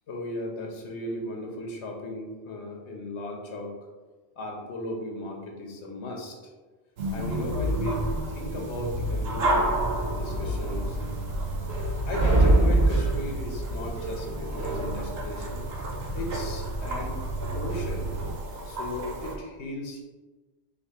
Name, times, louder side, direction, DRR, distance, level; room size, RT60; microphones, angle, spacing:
voice 1, 0.1-3.8 4.4-6.5 7.1-8.0 8.3-11.2 12.0-15.6 16.1-18.1 18.6-20.0, left 1 dB, 85° left, 1 dB, 1.1 m, -36 dB
sound 1, 7.0-19.4, right 1 dB, 70° right, 0.9 m, -32 dB
sound 2, 9.0-18.3, right 2 dB, 40° right, 1.0 m, -28 dB
5.0 x 2.4 x 3.5 m, 1.3 s
omnidirectional pair, 1.1 m